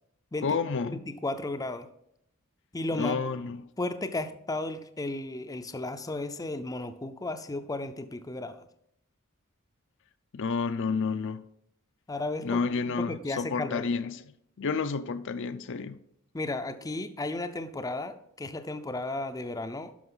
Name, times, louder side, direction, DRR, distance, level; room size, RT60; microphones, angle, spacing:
voice 1, 0.4-1.0 2.9-3.7 10.3-11.4 12.4-14.2 14.6-16.0, left 5 dB, 60° left, 0.5 m, -30 dB
voice 2, 1.1-1.9 2.7-3.2 3.8-8.6 12.1-13.9 16.3-20.1, left 2 dB, 15° left, 0.5 m, -34 dB
11.0 x 6.3 x 3.9 m
head